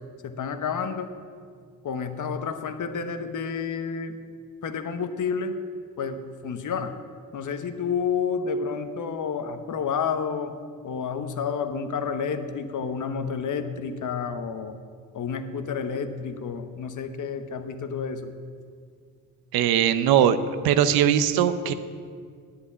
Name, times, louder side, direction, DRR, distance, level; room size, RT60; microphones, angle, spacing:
voice 1, 0.2-1.1 1.8-4.2 4.6-5.6 6.0-7.0 7.3-10.6 10.8-14.7 15.1-18.3, left 6 dB, 55° left, 8 dB, 1.2 m, -30 dB
voice 2, 19.5-20.4 20.6-21.7, right 10 dB, 80° right, 12 dB, 0.8 m, -20 dB
9.6 x 8.6 x 8.1 m, 2.1 s
supercardioid pair, 60°, 36 cm